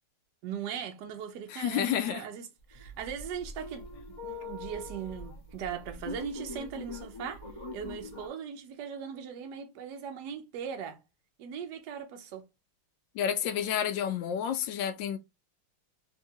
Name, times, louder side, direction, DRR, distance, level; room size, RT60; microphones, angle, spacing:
voice 1, 0.4-3.9 4.2-7.4 7.7-11.0 11.4-12.4, right 7 dB, 70° right, 1.1 m, -39 dB
voice 2, 1.5-2.2 13.1-15.2, left 9 dB, 75° left, 1.2 m, -30 dB
sound 1, 2.7-8.3, left 2 dB, 45° left, 0.4 m, -43 dB
3.6 x 2.8 x 2.6 m
omnidirectional pair, 2.3 m